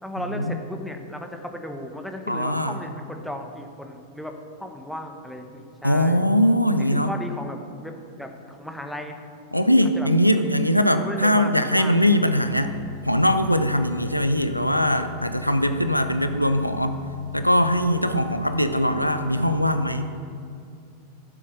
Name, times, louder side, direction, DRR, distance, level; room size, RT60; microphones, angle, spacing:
voice 1, 0.0-4.3 4.6-6.2 6.8-9.2 10.0-10.1 11.0-12.1, left 1 dB, ahead, 4 dB, 1.2 m, -35 dB
voice 2, 2.3-2.8 5.8-7.1 9.5-12.7 13.0-17.0 17.3-20.1, equal, 90° left, 9 dB, 0.6 m, -21 dB
sound 1, 12.2-19.8, left 3 dB, 65° left, 2.8 m, -39 dB
15.0 x 7.6 x 6.6 m, 2.5 s
figure-of-eight pair, 90°, 0 cm